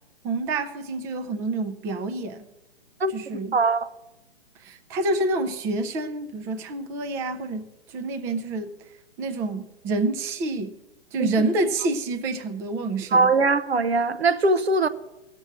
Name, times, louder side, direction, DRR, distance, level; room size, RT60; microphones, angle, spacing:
voice 1, 0.2-2.5 3.1-3.6 4.6-8.7 9.2-10.7 11.1-13.3, right 2 dB, 10° right, 0.4 m, -28 dB
voice 2, 3.5-3.9 11.2-11.3 13.1-14.9, right 3 dB, 80° right, 0.9 m, -21 dB
17.5 x 6.7 x 6.3 m
figure-of-eight pair, 125°, 31 cm